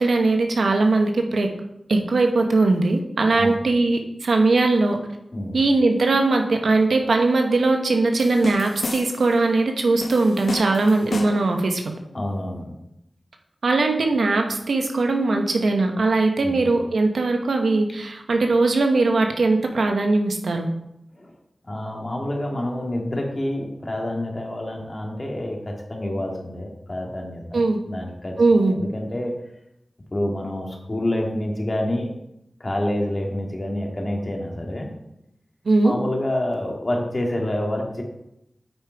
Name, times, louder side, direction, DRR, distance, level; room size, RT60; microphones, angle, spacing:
voice 1, 0.0-1.5 1.9-5.0 5.5-11.8 13.6-20.7 27.5-27.8 28.4-28.8 35.6-35.9, right 3 dB, 90° right, 4 dB, 1.0 m, -20 dB
voice 2, 5.3-5.6 12.1-12.7 16.4-16.7 21.2-21.3 21.7-28.4 28.6-29.3 30.1-32.1 32.6-34.9 35.8-38.0, left 1 dB, 40° left, 0 dB, 2.0 m, -27 dB
sound 1, 8.2-9.4 10.0-11.6, left 2 dB, 85° left, 1.0 m, -32 dB
8.8 x 5.0 x 4.6 m, 0.83 s
wide cardioid pair, 55°, 0 cm